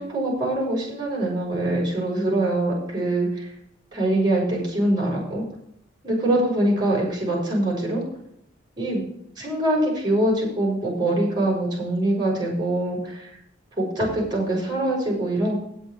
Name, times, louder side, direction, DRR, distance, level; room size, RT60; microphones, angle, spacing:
voice 1, 0.0-3.5 3.9-5.4 6.0-8.0 8.8-9.0 9.4-13.4 13.8-15.6, right 1 dB, 25° right, -4 dB, 5.8 m, -23 dB
8.7 x 8.3 x 6.9 m, 0.75 s
head